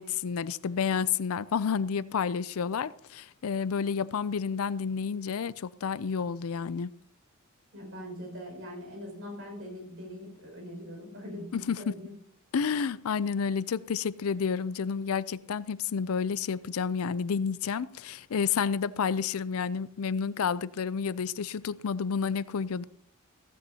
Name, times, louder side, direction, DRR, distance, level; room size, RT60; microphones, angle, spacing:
voice 1, 0.0-6.9 11.5-11.9 12.5-22.8, left 6 dB, 75° left, 0.5 m, -30 dB
voice 2, 7.7-12.1, equal, 60° right, 5.6 m, -42 dB
16.0 x 14.5 x 2.8 m
head